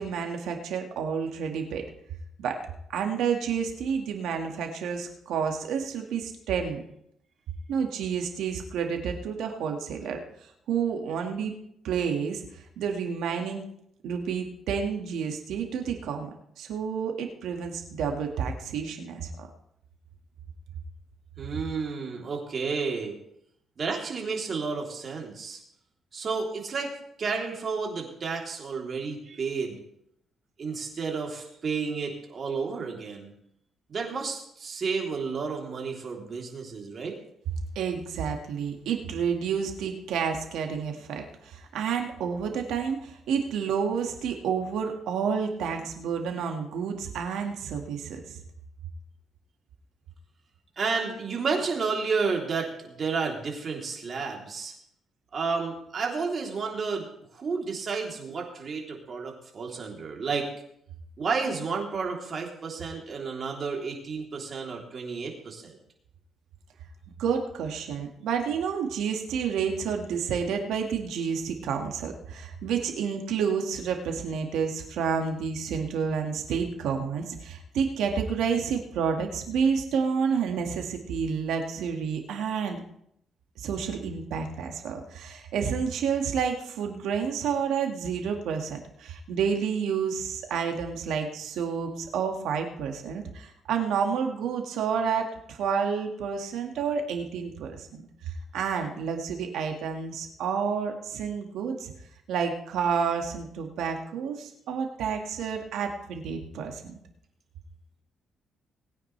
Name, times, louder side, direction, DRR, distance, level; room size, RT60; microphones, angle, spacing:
voice 1, 0.0-1.8 2.4-2.6 2.9-6.8 7.7-10.2 10.7-11.5 11.8-12.4 12.8-13.6 14.0-19.5 37.8-48.4 67.2-82.8 83.6-101.9 102.3-107.0, right 6 dB, 80° right, 3 dB, 1.9 m, -30 dB
voice 2, 21.4-23.1 23.8-25.6 26.1-26.9 27.2-29.8 30.6-33.3 33.9-37.2 50.8-54.7 55.3-57.1 57.3-60.5 61.2-65.7, right 5 dB, 45° right, 0 dB, 3.3 m, -31 dB
20.5 x 9.3 x 3.3 m, 0.73 s
cardioid pair, 90°, 0 cm